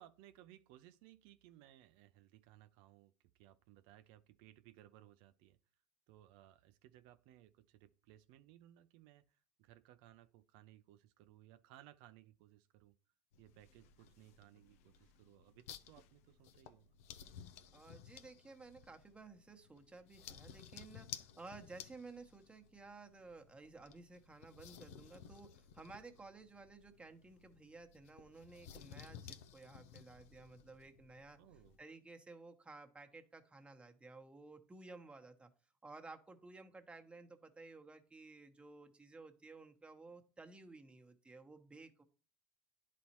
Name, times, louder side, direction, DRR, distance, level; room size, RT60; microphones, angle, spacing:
voice 1, 0.0-5.6 6.1-12.9 13.4-16.9 31.4-31.8, right 13 dB, 75° right, 0.4 m, -62 dB
sound 1, 13.3-31.8, left 9 dB, 90° left, 0.5 m, -56 dB
voice 2, 17.7-31.4 31.8-35.5 35.8-42.0, right 3 dB, 15° right, 1.0 m, -55 dB
10.5 x 4.2 x 2.9 m
supercardioid pair, 95°, 8 cm